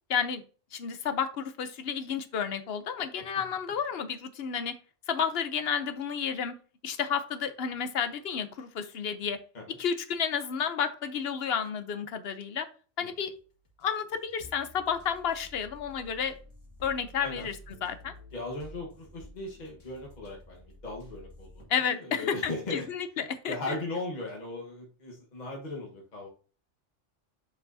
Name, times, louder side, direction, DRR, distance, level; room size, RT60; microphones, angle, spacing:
voice 1, 0.1-0.4 0.7-4.8 5.1-6.5 6.8-9.4 9.8-12.7 13.0-13.3 13.8-16.3 16.8-18.1 21.7-23.5, left 7 dB, 60° left, 10 dB, 0.9 m, -31 dB
sound 1, 13.3-21.7, equal, 80° left, 2.0 m, -51 dB
voice 2, 18.3-21.5 21.9-22.8 23.5-26.3, left 2 dB, 35° left, -1 dB, 1.4 m, -37 dB
6.8 x 5.8 x 2.7 m, 0.38 s
omnidirectional pair, 1.3 m